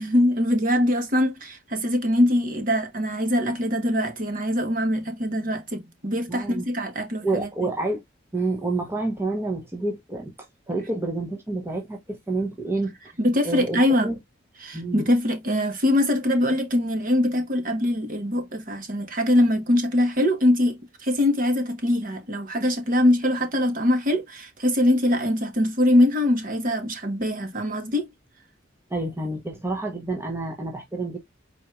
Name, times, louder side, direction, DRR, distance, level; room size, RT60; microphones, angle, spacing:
voice 1, 0.0-7.5 13.2-14.1 14.6-28.1, left 1 dB, 45° right, 1.3 m, -23 dB
voice 2, 6.3-6.6 7.2-8.0 8.3-10.3 10.7-12.9 13.4-14.1 14.7-15.1 28.9-31.2, right 2 dB, 15° right, 1.0 m, -28 dB
4.5 x 4.2 x 2.4 m
head